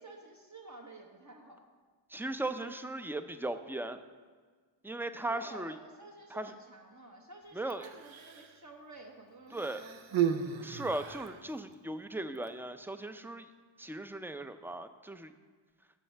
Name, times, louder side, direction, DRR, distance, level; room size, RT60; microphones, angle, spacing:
voice 1, 0.0-1.6 5.2-10.5, right 2 dB, 40° right, 0 dB, 1.0 m, -51 dB
voice 2, 2.1-4.0 4.8-5.7 6.3-6.5 7.5-7.9 9.5-9.8 10.6-13.5 13.8-15.3, right 2 dB, 5° right, 10 dB, 0.4 m, -37 dB
Human voice, 7.7-8.6 9.5-11.4 12.4-12.5, right 9 dB, 80° right, 0.6 m, -34 dB
13.5 x 6.4 x 3.4 m, 1.5 s
wide cardioid pair, 65°, 46 cm